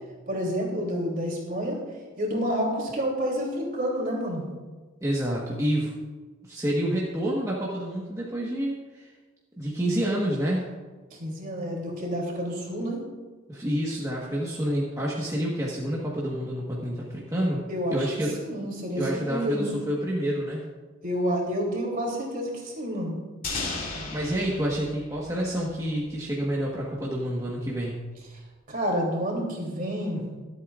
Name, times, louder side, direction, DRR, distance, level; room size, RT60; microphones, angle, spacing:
voice 1, 0.3-1.8 2.2-4.4 11.1-13.0 17.7-19.8 21.0-23.2 28.7-30.2, equal, 45° right, -1 dB, 3.2 m, -29 dB
voice 2, 5.0-5.9 6.4-9.1 9.6-10.7 13.5-17.6 17.9-18.4 18.9-20.6 24.1-28.0, equal, 15° right, -5 dB, 1.4 m, -28 dB
sound 1, 23.4-26.2, left 3 dB, 45° left, 2.5 m, -35 dB
24.5 x 8.4 x 2.5 m, 1.3 s
head